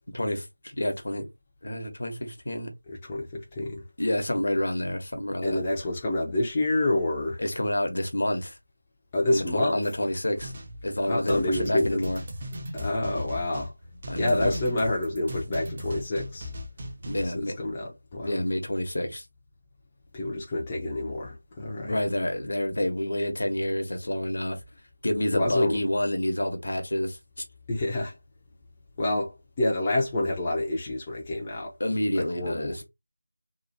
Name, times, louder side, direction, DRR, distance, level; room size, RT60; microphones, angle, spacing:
voice 1, 0.1-1.3 1.6-2.7 4.0-5.6 7.4-8.6 9.3-10.5 10.8-12.2 14.1-14.5 17.1-17.5 18.2-19.2 21.8-24.6 25.0-27.2 31.8-32.8, left 1 dB, 60° left, 1.0 m, -28 dB
voice 2, 2.9-3.8 5.4-7.4 9.1-9.8 11.1-12.1 12.7-13.7 14.1-16.5 17.2-18.4 20.1-22.0 25.3-25.8 27.7-28.2 29.0-31.7 32.1-32.8, left 1 dB, 20° left, 0.5 m, -28 dB
sound 1, 10.4-17.3, left 1 dB, 30° right, 0.7 m, -38 dB
2.9 x 2.3 x 2.7 m
figure-of-eight pair, 170°, 0 cm